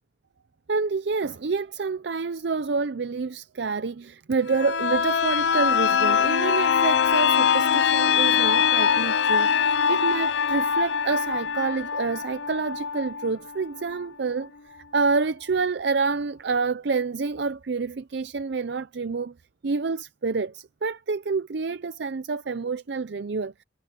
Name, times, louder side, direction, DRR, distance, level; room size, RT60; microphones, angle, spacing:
voice 1, 0.7-14.5 14.9-19.3 19.6-23.6, right 4 dB, 65° right, 0.5 m, -28 dB
sound 1, 4.5-14.1 14.4-14.5, left 7 dB, 75° left, 0.6 m, -23 dB
head